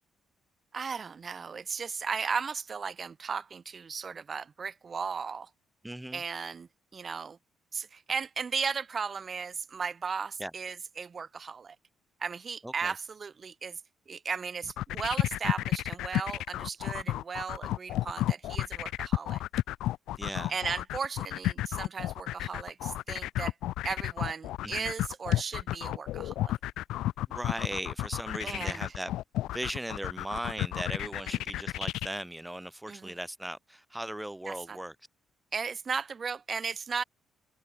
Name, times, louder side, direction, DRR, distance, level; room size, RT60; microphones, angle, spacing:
voice 1, 0.7-5.5 6.1-7.4 7.7-11.7 12.2-13.8 14.1-19.4 20.5-23.5 23.8-26.6 28.4-28.8 31.0-31.1 32.9-33.1 34.5-34.8 35.5-37.0, right 5 dB, 40° right, 1.3 m, -36 dB
voice 2, 5.8-6.2 10.4-10.5 12.6-12.9 20.2-20.6 24.6-24.9 27.3-29.1 29.5-35.0, right 1 dB, 5° right, 1.1 m, -38 dB
sound 1, 14.6-32.1, left 15 dB, 90° left, 1.4 m, -32 dB
cardioid pair, 90°, 0 cm